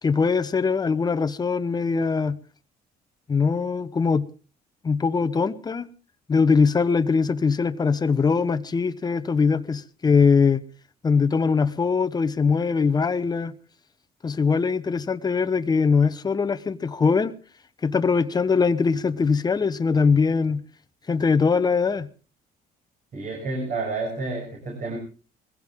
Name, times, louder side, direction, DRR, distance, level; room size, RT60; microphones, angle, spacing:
voice 1, 0.0-2.4 3.3-4.3 4.8-5.9 6.3-10.6 11.0-13.5 14.2-17.3 17.8-20.6 21.1-22.1, left 5 dB, 25° left, 0.9 m, -22 dB
voice 2, 23.1-25.0, right 3 dB, 50° right, 6.6 m, -30 dB
21.0 x 16.0 x 3.7 m
cardioid pair, 110°, 17 cm